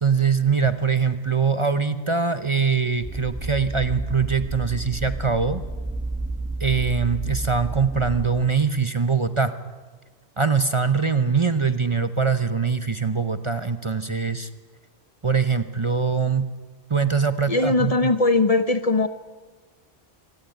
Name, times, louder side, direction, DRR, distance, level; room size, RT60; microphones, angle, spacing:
voice 1, 0.0-5.6 6.6-9.5 10.4-14.5 15.2-16.5 16.9-18.1, right 5 dB, 30° right, 10 dB, 0.8 m, -23 dB
sound 1, 3.0-8.3, right 2 dB, 5° right, 2.1 m, -31 dB
voice 2, 17.5-19.1, left 2 dB, 35° left, 11 dB, 1.0 m, -20 dB
24.5 x 18.0 x 9.3 m, 1.3 s
omnidirectional pair, 1.1 m